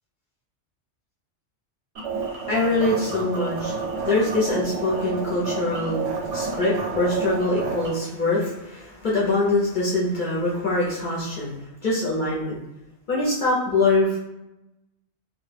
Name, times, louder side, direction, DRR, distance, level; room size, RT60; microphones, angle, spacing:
sound 1, 2.0-7.9, right 4 dB, 85° right, 0.9 m, -30 dB
voice 1, 2.5-3.7 4.0-11.6 11.8-12.6 13.1-14.2, left 2 dB, 50° left, -6 dB, 0.7 m, -24 dB
2.2 x 2.1 x 3.2 m, 0.93 s
omnidirectional pair, 1.2 m